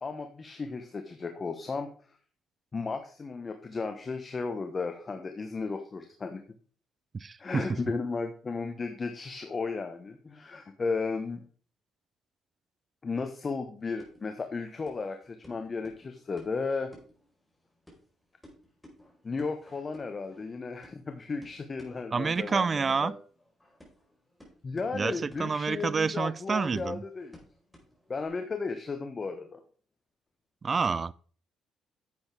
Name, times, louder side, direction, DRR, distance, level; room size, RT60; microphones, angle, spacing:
voice 1, 0.0-1.9 2.7-6.4 7.4-11.4 13.0-16.9 19.2-23.1 24.6-27.4 28.1-29.6, left 4 dB, 35° left, 1.1 m, -34 dB
voice 2, 7.1-7.8 22.1-23.1 24.9-27.0 30.6-31.1, right 5 dB, 40° right, 0.4 m, -28 dB
sound 1, 13.8-28.3, equal, 10° left, 4.4 m, -57 dB
10.5 x 8.0 x 3.5 m
supercardioid pair, 65°, 0 cm